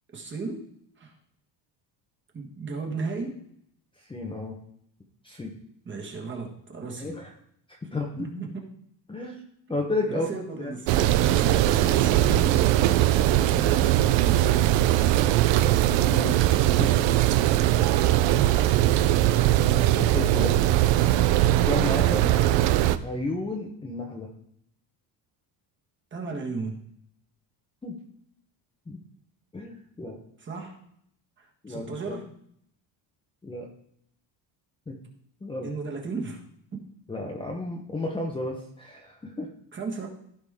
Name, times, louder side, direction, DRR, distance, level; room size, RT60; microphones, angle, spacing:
voice 1, 0.1-0.7 1.0-1.2 2.3-3.4 5.8-7.1 8.2-8.7 10.1-14.5 22.1-22.4 26.1-26.8 30.4-30.8 31.4-32.3 35.6-36.4 36.7-36.8 39.7-40.1, right 4 dB, 25° right, 1 dB, 1.7 m, -35 dB
voice 2, 4.0-4.6 5.2-5.6 7.0-7.3 7.7-8.3 9.1-9.4 9.7-10.8 12.4-12.6 16.0-17.1 17.9-18.1 20.0-20.8 21.6-22.2 23.0-24.3 27.8-28.0 28.9-29.0 29.5-30.2 31.6-32.2 33.4-33.7 34.9-35.0 35.4-35.7 37.1-39.5, left 2 dB, 10° left, 0 dB, 0.9 m, -33 dB
sound 1, 10.9-23.0, right 14 dB, 80° right, 0.7 m, -21 dB
15.0 x 5.1 x 3.7 m, 0.69 s
cardioid pair, 165°, 44 cm